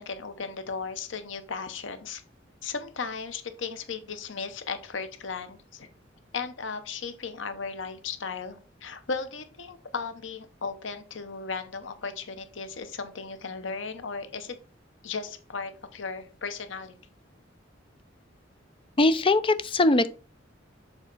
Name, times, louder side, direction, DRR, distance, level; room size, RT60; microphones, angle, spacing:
voice 1, 0.0-2.2 2.6-5.9 6.3-14.6 15.0-16.9, left 5 dB, 85° left, 0.9 m, -36 dB
voice 2, 19.0-20.1, left 2 dB, 30° left, 0.5 m, -21 dB
7.2 x 4.1 x 4.0 m
head